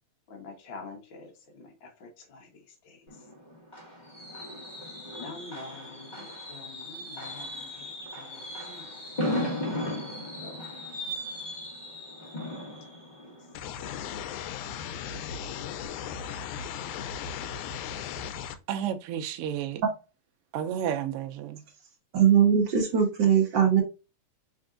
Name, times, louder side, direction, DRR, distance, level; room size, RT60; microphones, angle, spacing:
voice 1, 0.3-3.0 5.1-8.9 9.6-9.7 10.4-10.6, left 3 dB, 50° left, 1.7 m, -47 dB
Fireworks, 3.1-14.8 15.1-15.4 15.7-15.8, left 1 dB, 20° left, 1.6 m, -37 dB
sound 1, 13.5-18.5, left 8 dB, 85° left, 2.0 m, -36 dB
voice 2, 18.7-19.8 20.5-21.6, right 9 dB, 75° right, 1.3 m, -31 dB
voice 3, 22.1-23.8, right 8 dB, 50° right, 1.5 m, -21 dB
4.7 x 4.3 x 2.5 m
omnidirectional pair, 3.3 m